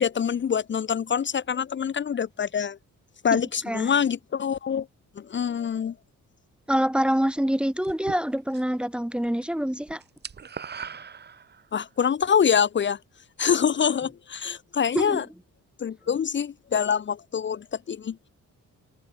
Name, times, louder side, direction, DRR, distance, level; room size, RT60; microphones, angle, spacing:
voice 1, 0.0-2.8 3.2-4.9 5.2-5.9 11.7-13.0 13.4-15.2 15.8-18.2, left 7 dB, 40° left, 1.1 m, -25 dB
voice 2, 3.3-3.9 6.7-10.0 14.9-15.2, equal, 5° right, 1.4 m, -26 dB
sound 1, 7.8-8.8 9.1-9.5 9.7-11.8, right 6 dB, 35° right, 2.6 m, -40 dB
wide cardioid pair, 170°, 30 cm